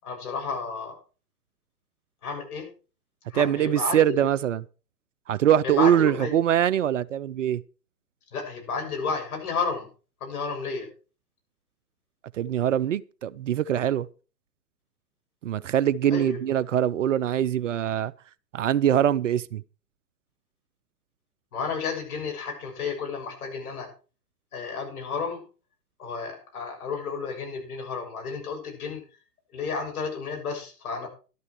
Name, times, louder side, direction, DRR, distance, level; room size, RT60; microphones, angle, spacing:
voice 1, 0.0-1.0 2.2-2.7 3.3-4.0 5.6-6.3 8.3-9.9 10.2-10.9 16.1-16.4 21.5-23.9 24.5-25.4 26.0-29.0 29.5-31.1, left 4 dB, 60° left, 7.3 m, -32 dB
voice 2, 3.3-4.6 5.3-7.6 12.3-14.1 15.4-18.1 18.5-19.6, right 10 dB, 50° right, 0.6 m, -23 dB
12.5 x 12.0 x 4.7 m
figure-of-eight pair, 125°, 49 cm